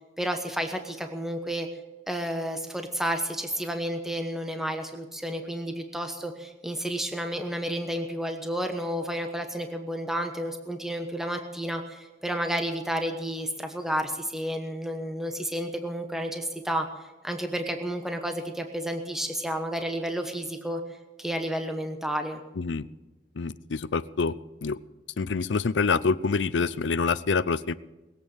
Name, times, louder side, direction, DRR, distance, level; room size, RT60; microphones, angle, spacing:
voice 1, 0.2-1.7 2.1-16.9 17.2-20.8 21.2-22.4, equal, 5° right, 5 dB, 1.1 m, -31 dB
voice 2, 23.4-24.3 24.6-24.8 25.2-27.7, left 4 dB, 75° left, 15 dB, 0.6 m, -26 dB
21.0 x 8.5 x 7.2 m, 1.1 s
head